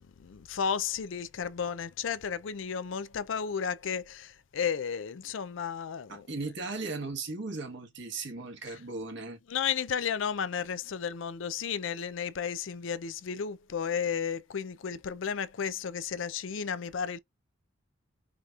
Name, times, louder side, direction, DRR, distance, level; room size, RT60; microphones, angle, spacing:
voice 1, 0.2-6.2 9.5-17.2, left 7 dB, 70° left, 0.4 m, -33 dB
voice 2, 6.1-9.4, right 3 dB, 65° right, 1.3 m, -37 dB
5.0 x 2.9 x 2.4 m
head